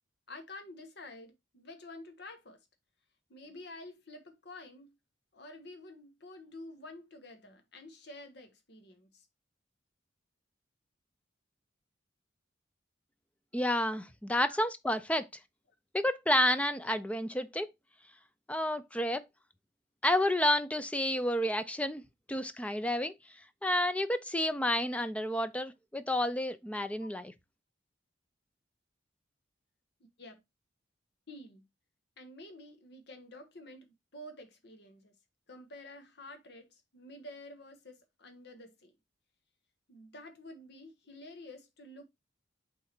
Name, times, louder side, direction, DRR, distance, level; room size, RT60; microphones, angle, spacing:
voice 1, 0.3-2.6 3.3-4.9 5.3-9.3 14.3-14.6 27.0-27.1 30.2-30.4 31.3-31.6 32.2-35.1 35.5-38.9 39.9-42.0, left 1 dB, 60° left, 1.4 m, -49 dB
voice 2, 13.5-15.3 15.9-17.7 18.5-19.2 20.0-22.0 22.3-23.1 23.6-27.3, left 1 dB, 5° left, 0.4 m, -30 dB
6.3 x 3.8 x 4.3 m
head